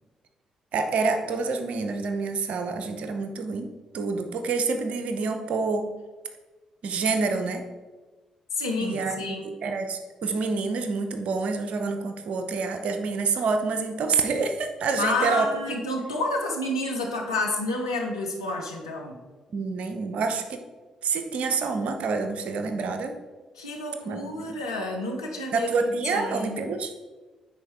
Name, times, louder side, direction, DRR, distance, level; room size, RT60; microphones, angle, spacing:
voice 1, 0.7-3.7 3.9-5.9 6.8-7.6 8.8-15.5 19.5-20.6 21.0-23.2 24.1-24.6 25.5-26.9, right 4 dB, 65° right, 7 dB, 0.8 m, -27 dB
voice 2, 8.5-9.4 15.0-19.2 23.6-26.6, left 2 dB, 90° left, 0 dB, 0.8 m, -29 dB
9.7 x 4.4 x 3.6 m, 1.3 s
hypercardioid pair, 40°, 2 cm